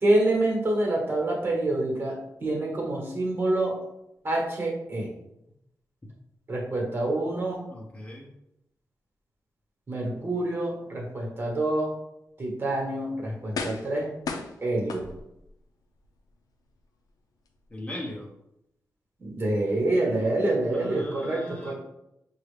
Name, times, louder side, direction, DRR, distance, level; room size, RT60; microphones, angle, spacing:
voice 1, 0.0-3.8 4.2-5.1 6.5-7.6 9.9-11.9 12.4-14.1 14.6-15.1 19.2-21.7, right 2 dB, 35° right, -2 dB, 1.3 m, -27 dB
voice 2, 7.7-8.3 17.7-18.3 20.7-21.7, left 1 dB, 20° left, -3 dB, 0.7 m, -38 dB
sound 1, 12.6-12.7 13.5-14.0 14.3-15.5 16.0-16.1, left 4 dB, 75° left, 0.5 m, -34 dB
5.4 x 2.4 x 3.3 m, 0.85 s
wide cardioid pair, 130°, 6 cm